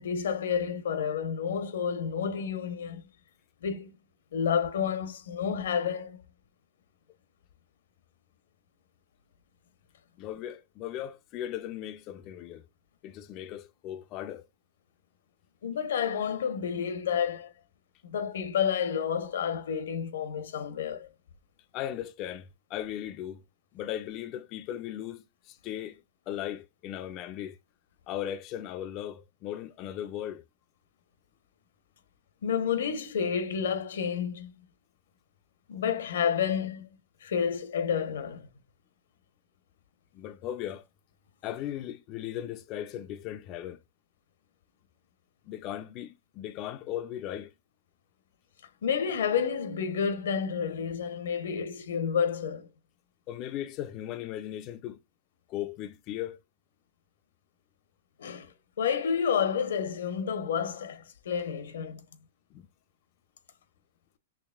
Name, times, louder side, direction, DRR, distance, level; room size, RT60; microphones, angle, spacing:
voice 1, 0.0-3.0 3.6-3.9 4.3-6.2 15.6-17.5 18.0-21.1 32.4-34.5 35.7-36.8 37.2-38.5 48.8-52.7 58.2-62.0, left 7 dB, 80° left, 0.8 m, -30 dB
voice 2, 10.2-12.6 13.0-14.4 21.7-23.4 23.7-27.6 28.1-30.4 40.1-40.8 41.4-43.8 45.5-47.5 53.3-55.0 55.5-56.4 62.5-62.7, left 11 dB, 30° left, 0.3 m, -37 dB
4.6 x 3.1 x 2.3 m
hypercardioid pair, 155°, 0 cm